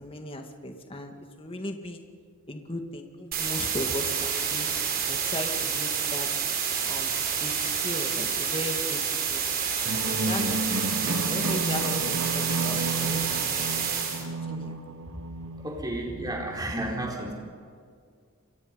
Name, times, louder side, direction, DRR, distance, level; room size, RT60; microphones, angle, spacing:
voice 1, 0.0-2.0 2.5-4.7 5.0-6.3 6.9-7.1 7.4-9.0 9.3-9.4 10.1-10.8 11.0-13.8 14.2-14.8, left 1 dB, 25° left, 4 dB, 2.2 m, -37 dB
sound 1, 3.3-14.2, right 7 dB, 45° right, 3.9 m, -28 dB
sound 2, 9.8-16.6, right 2 dB, 70° right, 1.4 m, -32 dB
voice 2, 15.6-17.3, right 1 dB, 20° right, -1 dB, 4.4 m, -32 dB
29.0 x 23.0 x 5.4 m, 2.1 s
head